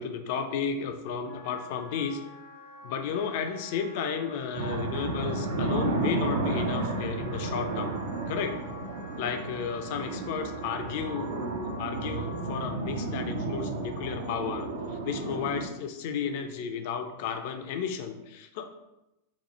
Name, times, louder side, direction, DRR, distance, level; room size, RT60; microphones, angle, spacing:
voice 1, 0.0-2.2 2.8-7.9 8.3-8.6 9.2-18.7, left 6 dB, 50° left, 6 dB, 0.3 m, -33 dB
Wind instrument woodwind instrument, 1.3-12.6, left 2 dB, 75° left, 0.7 m, -48 dB
sound 1, 4.5-15.7, right 3 dB, 60° right, 0.3 m, -32 dB
2.9 x 2.0 x 3.0 m, 0.93 s
figure-of-eight pair, 90°, 0 cm